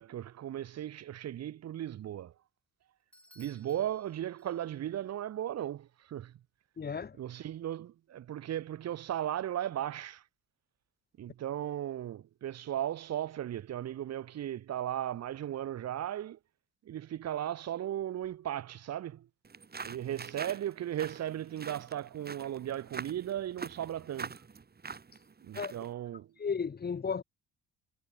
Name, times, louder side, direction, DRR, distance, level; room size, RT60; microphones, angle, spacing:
voice 1, 0.0-2.3 3.3-6.4 7.2-10.2 11.2-16.4 16.8-19.3 19.8-24.4 25.4-26.3, right 11 dB, 60° right, 3.0 m, -36 dB
Bell / Doorbell, 3.1-5.0, left 1 dB, 5° left, 6.5 m, -62 dB
voice 2, 6.8-7.2 25.5-25.7 26.4-27.2, left 6 dB, 35° left, 1.7 m, -34 dB
sound 1, 19.4-25.9, right 5 dB, 35° right, 4.3 m, -45 dB
hypercardioid pair, 60°, 29 cm